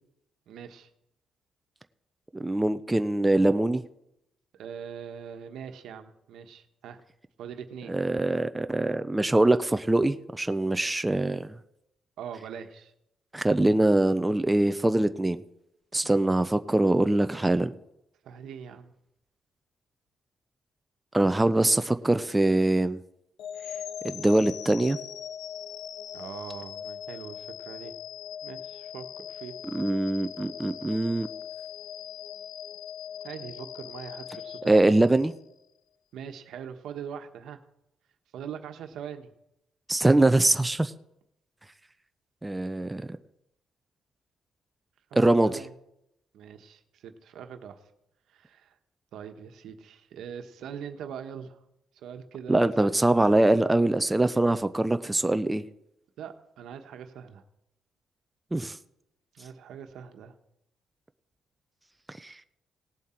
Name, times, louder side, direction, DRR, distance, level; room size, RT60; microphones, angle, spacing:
voice 1, 0.5-0.9 4.5-7.0 7.4-7.9 12.2-12.9 16.0-16.2 18.2-18.9 26.1-27.9 28.4-29.5 33.2-35.1 36.1-37.6 38.3-39.3 45.1-45.7 46.3-47.8 48.3-48.7 49.1-51.6 51.9-52.9 56.2-57.4 59.3-60.3, right 8 dB, 80° right, 7 dB, 1.2 m, -42 dB
voice 2, 2.3-3.8 7.9-11.5 13.3-15.4 15.9-17.7 21.1-23.0 24.0-25.0 29.7-31.3 34.7-35.3 39.9-40.9 42.4-43.1 45.1-45.5 52.5-55.6 58.5-58.8 62.1-62.3, right 2 dB, 10° right, 10 dB, 0.5 m, -23 dB
sound 1, 23.4-35.5, left 9 dB, 80° left, 0.6 m, -40 dB
18.0 x 7.3 x 4.5 m, 0.81 s
cardioid pair, 90°, 0 cm